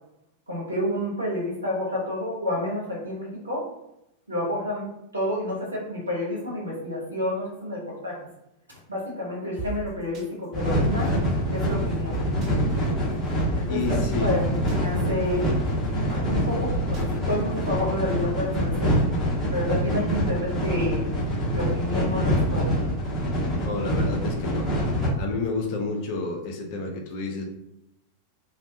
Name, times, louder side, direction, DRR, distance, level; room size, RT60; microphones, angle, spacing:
voice 1, 0.5-3.6 4.3-4.9 5.1-8.2 8.9-11.1 11.5-12.2 13.6-15.5 16.1-18.9 19.5-21.0 21.5-22.7, left 1 dB, 80° right, -4 dB, 0.8 m, -29 dB
sound 1, 9.6-9.7 10.1-10.2 12.1-12.5 13.4-13.5 13.8-13.9 14.5-14.8 16.2-16.3 16.7-17.0, right 7 dB, 35° right, 0.4 m, -33 dB
sound 2, 10.5-25.1, equal, 15° left, 0.8 m, -25 dB
voice 2, 13.7-14.3 23.6-24.7 25.2-27.4, left 3 dB, 45° left, 2 dB, 0.5 m, -30 dB
2.2 x 2.1 x 2.7 m, 0.84 s
figure-of-eight pair, 90°, 0 cm